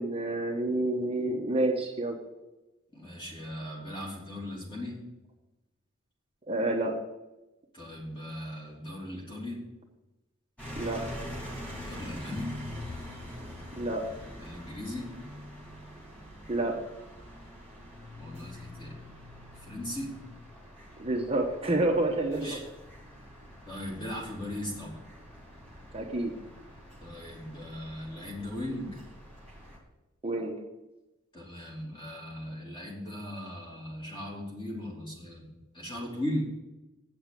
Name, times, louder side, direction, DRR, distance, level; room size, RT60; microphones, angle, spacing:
voice 1, 0.0-2.2 6.5-6.9 10.8-11.0 13.8-14.0 16.5-16.7 21.0-22.6 25.9-26.3 30.2-30.5, right 2 dB, 30° right, 0 dB, 1.1 m, -28 dB
voice 2, 2.9-5.0 7.7-9.6 11.8-12.6 14.4-15.1 18.2-19.1 19.5-20.2 22.3-22.6 23.2-23.3 23.7-25.0 27.0-29.0 31.3-35.5 35.7-36.4, left 1 dB, 20° left, -3 dB, 3.1 m, -38 dB
sound 1, 10.6-29.8, left 1 dB, 5° left, 3.5 m, -44 dB
8.6 x 6.8 x 7.5 m, 1.0 s
head